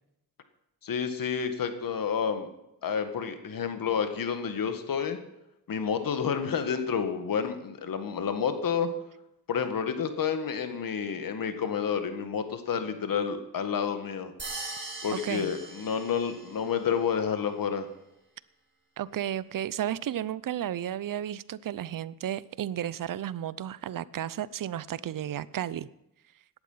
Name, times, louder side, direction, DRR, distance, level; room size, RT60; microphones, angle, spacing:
voice 1, 0.8-2.5 2.8-5.2 5.7-8.9 9.5-14.3 15.0-17.9, left 7 dB, 70° left, 8 dB, 1.8 m, -29 dB
sound 1, 14.4-16.7, right 2 dB, 35° right, 4.7 m, -40 dB
voice 2, 15.1-15.5 19.0-25.9, right 11 dB, 65° right, 19 dB, 0.6 m, -33 dB
17.0 x 11.5 x 5.7 m, 0.87 s
cardioid pair, 95°, 35 cm